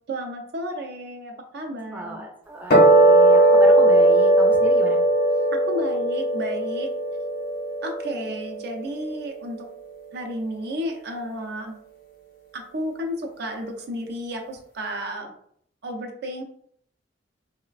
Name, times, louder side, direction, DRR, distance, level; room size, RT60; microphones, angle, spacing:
voice 1, 0.1-2.3 5.5-6.9 7.8-9.7 10.1-11.8 12.5-15.3 15.8-16.4, equal, 60° right, 3 dB, 0.5 m, -32 dB
voice 2, 1.9-5.0, right 1 dB, 10° right, -1 dB, 0.4 m, -34 dB
sound 1, 2.7-9.2, right 1 dB, 55° left, 0.6 m, -18 dB
3.2 x 2.1 x 2.3 m, 0.65 s
head